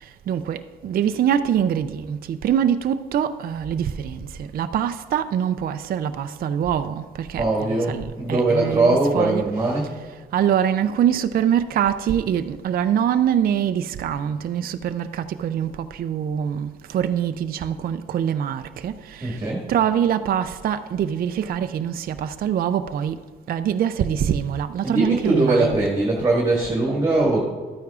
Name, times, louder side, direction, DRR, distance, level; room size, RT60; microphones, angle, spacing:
voice 1, 0.3-9.4 10.3-19.4 19.7-23.2 23.5-25.8, right 9 dB, 50° right, 0.4 m, -24 dB
voice 2, 7.4-9.9 19.2-19.6 24.8-27.4, right 2 dB, 20° right, 1.7 m, -21 dB
13.0 x 9.1 x 2.4 m
cardioid pair, 90°, 20 cm